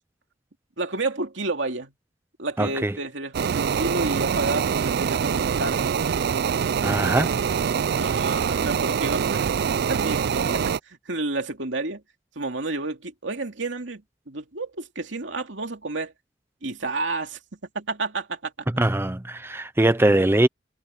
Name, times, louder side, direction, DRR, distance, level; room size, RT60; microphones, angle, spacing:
voice 1, 0.8-1.9 2.4-5.8 8.0-9.4 9.9-12.0 12.4-14.0 14.3-16.1 16.6-17.4 17.7-18.5, right 3 dB, 80° right, 2.6 m, -30 dB
voice 2, 2.6-3.0 6.8-7.3 18.8-20.5, right 1 dB, 15° right, 0.6 m, -21 dB
sound 1, 3.3-10.8, right 7 dB, 60° right, 0.4 m, -24 dB
head